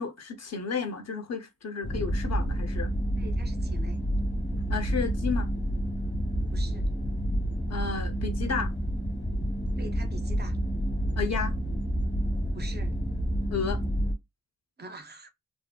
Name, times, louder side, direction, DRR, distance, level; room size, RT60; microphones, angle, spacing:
voice 1, 0.0-2.9 4.7-5.5 7.7-8.7 11.2-11.6 13.5-13.8, left 5 dB, 55° left, 0.6 m, -32 dB
sound 1, 1.8-14.1, equal, 35° left, 1.1 m, -29 dB
voice 2, 3.2-4.1 6.5-6.9 9.8-10.6 12.5-13.0 14.8-15.3, right 2 dB, 35° right, 0.4 m, -44 dB
2.6 x 2.4 x 2.2 m
wide cardioid pair, 150°, 31 cm